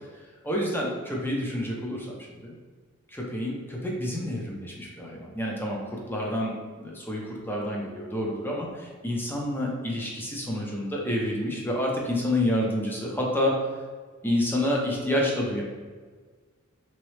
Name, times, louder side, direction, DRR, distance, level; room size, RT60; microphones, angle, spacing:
voice 1, 0.4-2.1 2.4-2.6 3.1-13.5 14.2-15.6, left 1 dB, 10° left, -2 dB, 0.6 m, -28 dB
3.5 x 3.0 x 3.2 m, 1.5 s
head